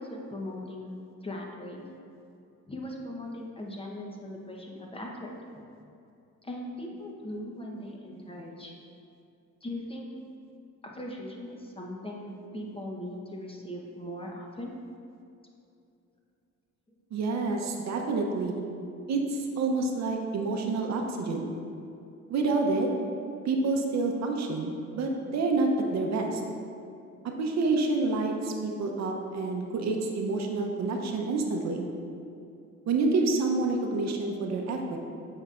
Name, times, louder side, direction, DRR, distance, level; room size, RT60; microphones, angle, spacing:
voice 1, 0.0-1.9 2.7-5.6 6.4-8.7 9.6-10.1 10.8-14.7, left 1 dB, 20° left, -1 dB, 0.9 m, -39 dB
voice 2, 17.1-18.6 19.1-21.5 22.3-22.9 23.4-26.4 27.2-31.9 32.9-35.0, right 3 dB, 65° right, 2 dB, 0.7 m, -28 dB
7.8 x 5.5 x 2.4 m, 2.6 s
cardioid pair, 90°, 30 cm